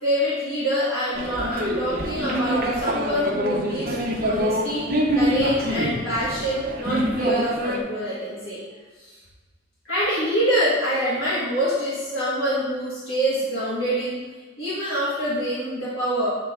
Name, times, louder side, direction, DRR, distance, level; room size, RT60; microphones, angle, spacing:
voice 1, 0.0-4.8 5.1-8.6 9.0-9.2 9.8-14.2 14.6-16.3, equal, 90° left, -9 dB, 1.5 m, -25 dB
sound 1, 1.1-7.8, equal, 45° right, 0.7 m, -25 dB
8.4 x 3.2 x 3.6 m, 1.3 s
head